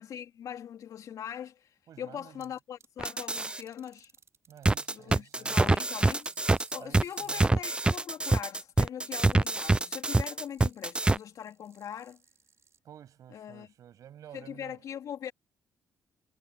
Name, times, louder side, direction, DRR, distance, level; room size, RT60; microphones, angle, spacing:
voice 1, 0.0-1.7 2.0-4.1 4.9-6.3 6.7-12.2 13.3-13.7 14.3-15.3, left 9 dB, 65° left, 3.6 m, -41 dB
voice 2, 1.9-2.5 4.5-5.6 6.8-7.5 12.8-14.8, right 10 dB, 70° right, 7.7 m, -51 dB
sound 1, 2.4-2.9 3.2-7.4 9.0-12.8, right 6 dB, 50° right, 5.9 m, -60 dB
sound 2, 3.0-3.6 4.7-11.2, right 2 dB, 15° right, 0.5 m, -25 dB
supercardioid pair, 55°, 6 cm